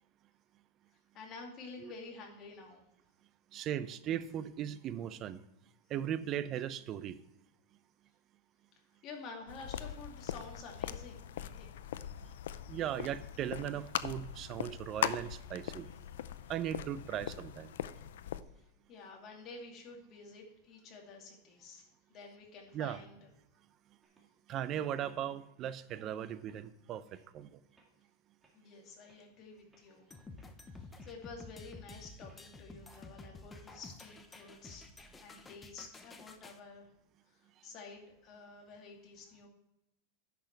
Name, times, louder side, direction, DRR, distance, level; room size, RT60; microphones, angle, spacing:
voice 1, 1.1-2.8 9.0-11.9 18.5-23.2 28.5-30.1 30.7-34.9 35.2-36.9 37.2-39.5, left 4 dB, 35° left, 1 dB, 2.4 m, -50 dB
voice 2, 3.5-5.4 5.9-7.2 12.7-15.9 16.5-17.7 22.7-23.0 24.5-27.0 27.3-27.6, right 10 dB, 35° right, 15 dB, 0.5 m, -38 dB
sound 1, 9.5-18.4, left 10 dB, 85° left, 0.5 m, -41 dB
sound 2, 24.0-24.6 25.0-25.2 25.7-26.0 26.5-26.6 27.1-27.2 27.7-27.9 28.4-28.5 29.1-29.2 29.7-29.9 30.3-30.5 31.0-31.3 31.6-31.8 32.3-32.4 32.9-33.1 33.5-33.6, right 3 dB, 15° right, 2.1 m, -68 dB
sound 3, 30.1-36.6, left 3 dB, 15° left, 0.8 m, -51 dB
10.5 x 6.2 x 4.5 m, 0.89 s
supercardioid pair, 150°, 0 cm